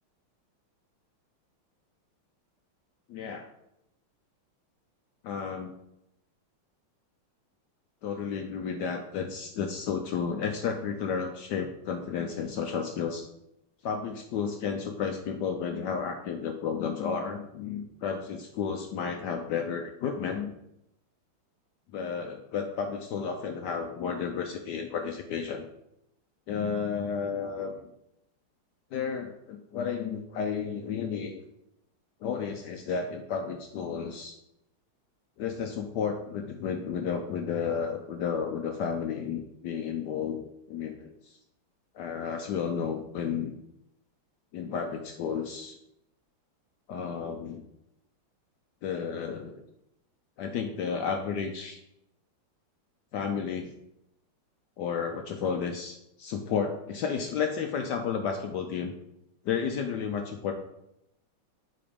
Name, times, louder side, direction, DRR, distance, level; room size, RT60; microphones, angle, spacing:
voice 1, 3.1-3.5 5.2-5.7 8.0-13.3 13.8-20.5 21.9-25.6 26.5-27.8 28.9-31.4 32.2-34.4 35.4-40.4 40.7-41.3 41.9-43.5 44.5-45.8 46.9-47.6 48.8-49.5 50.4-51.8 53.1-53.7 54.8-58.9 59.4-60.5, left 6 dB, 75° left, 4 dB, 1.0 m, -32 dB
7.9 x 3.4 x 5.0 m, 0.82 s
omnidirectional pair, 2.3 m